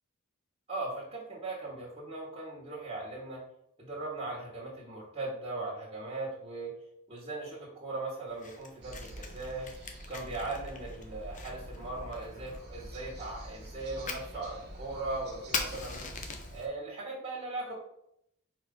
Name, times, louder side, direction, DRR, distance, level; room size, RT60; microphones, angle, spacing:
voice 1, 0.7-3.4 3.8-6.7 7.1-9.7 10.1-16.1 16.5-17.7, right 2 dB, 25° right, -5 dB, 1.8 m, -39 dB
Fire, 8.3-16.7, left 4 dB, 35° left, 0.8 m, -43 dB
sound 1, 8.8-16.6, right 1 dB, 50° right, 1.3 m, -46 dB
4.9 x 3.8 x 5.5 m, 0.76 s
head